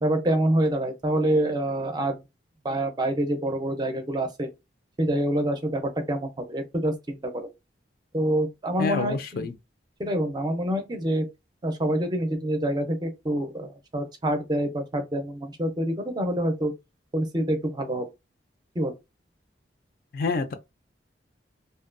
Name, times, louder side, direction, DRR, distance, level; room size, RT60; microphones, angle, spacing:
voice 1, 0.0-2.2 2.6-4.5 5.0-7.4 8.1-9.5 10.0-11.3 11.6-16.7 17.1-18.1 18.8-18.9, right 1 dB, 25° right, 0.4 m, -26 dB
voice 2, 8.8-9.5 20.1-20.5, left 4 dB, 50° left, 0.3 m, -27 dB
2.6 x 2.2 x 2.4 m
head